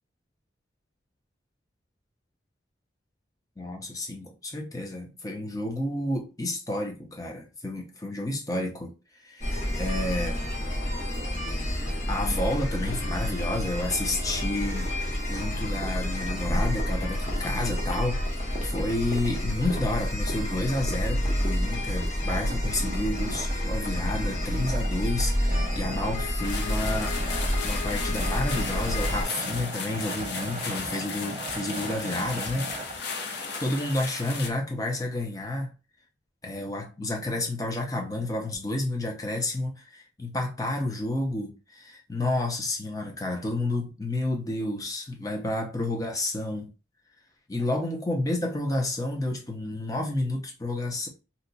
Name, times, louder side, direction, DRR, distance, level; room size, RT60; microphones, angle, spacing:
voice 1, 3.6-8.9 9.2-10.5 11.5-27.2 27.6-35.7 36.4-46.7 47.5-51.1, left 2 dB, 20° left, 0.6 m, -30 dB
sound 1, 9.4-29.2, equal, 40° left, 0.9 m, -29 dB
sound 2, 22.2-33.0, right 2 dB, 35° right, 0.4 m, -39 dB
sound 3, 26.4-34.5, left 4 dB, 60° left, 0.6 m, -36 dB
2.9 x 2.2 x 3.9 m
head